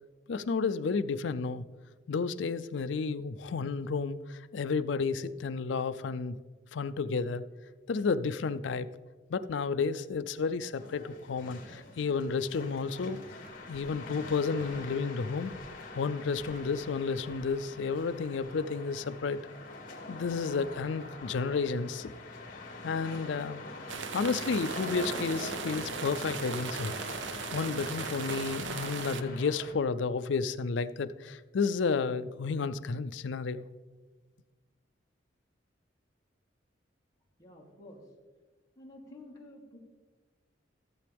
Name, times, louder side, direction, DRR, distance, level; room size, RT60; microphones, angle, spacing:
voice 1, 0.3-1.6 2.1-6.4 6.7-7.4 7.9-8.9 9.3-13.2 13.7-15.5 15.9-19.4 20.1-22.1 22.8-23.6 24.1-26.9 27.5-33.7, left 4 dB, 75° left, 12 dB, 0.4 m, -31 dB
sound 1, 10.7-29.7, left 2 dB, 45° left, 2.1 m, -44 dB
Crackle, 11.6-12.8 13.3-13.9 14.6-15.0 15.4-15.8 16.1-18.1 18.3-18.5, equal, 45° right, 1.2 m, -53 dB
sound 2, 23.9-29.2, right 6 dB, 75° right, 0.5 m, -38 dB
voice 2, 37.4-38.0 38.8-39.8, left 1 dB, 20° left, -3 dB, 1.9 m, -50 dB
15.0 x 7.7 x 3.4 m, 1.3 s
head